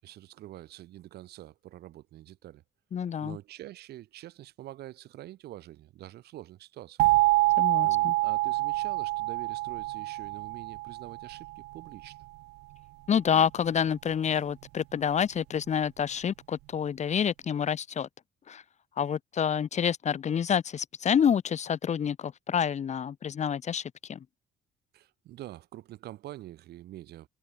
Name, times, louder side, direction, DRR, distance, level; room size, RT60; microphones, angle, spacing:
voice 1, 0.0-2.6 3.2-7.1 7.8-12.2 24.9-27.3, right 14 dB, 70° right, 5.4 m, -46 dB
voice 2, 2.9-3.4 7.6-8.1 13.1-18.1 18.5-18.6 19.0-24.2, left 8 dB, 45° left, 2.5 m, -28 dB
sound 1, 7.0-11.7, right 21 dB, 90° right, 0.7 m, -26 dB
cardioid pair, 110°, 17 cm